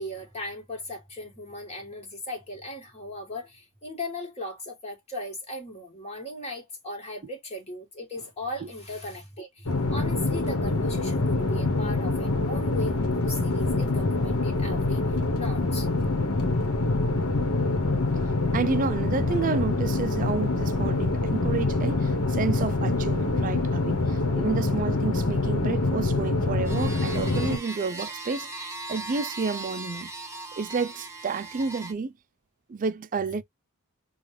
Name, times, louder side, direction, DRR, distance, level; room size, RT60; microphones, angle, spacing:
voice 1, 0.0-15.0 15.4-15.9, left 1 dB, 30° left, 1.5 m, -37 dB
sound 1, 9.7-27.6, left 2 dB, 75° left, 1.0 m, -25 dB
voice 2, 18.5-30.1 30.5-32.1 32.7-33.4, right 4 dB, 35° right, 0.4 m, -30 dB
sound 2, 26.6-31.9, right 2 dB, 10° right, 0.7 m, -38 dB
5.7 x 2.3 x 3.1 m
head